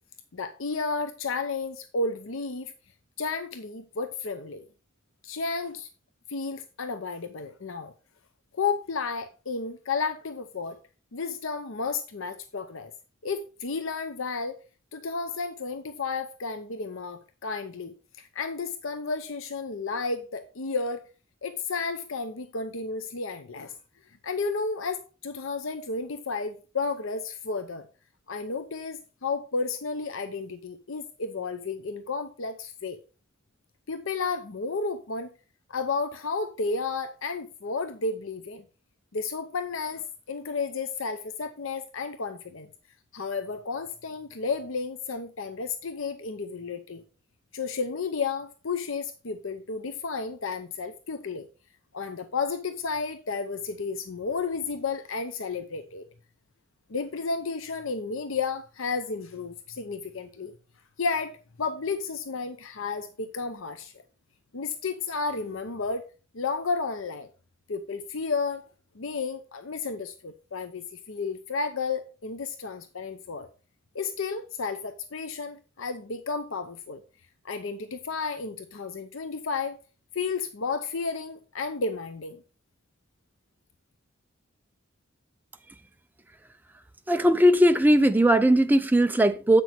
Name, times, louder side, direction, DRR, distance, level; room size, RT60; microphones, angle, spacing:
voice 1, 0.3-2.7 3.2-4.6 5.2-5.9 6.3-7.9 8.5-10.8 11.1-12.9 13.2-14.6 14.9-21.0 21.4-23.7 24.2-27.9 28.3-33.0 33.9-35.3 35.7-38.6 39.1-42.7 43.1-47.0 47.5-51.5 51.9-56.0 56.9-60.5 61.0-63.9 64.5-66.0 66.3-67.3 67.7-68.6 68.9-73.5 73.9-77.0 77.4-79.8 80.1-82.4, left 4 dB, 75° left, 0.7 m, -32 dB
voice 2, 87.1-89.6, right 1 dB, 10° right, 0.5 m, -19 dB
8.3 x 6.1 x 4.5 m
head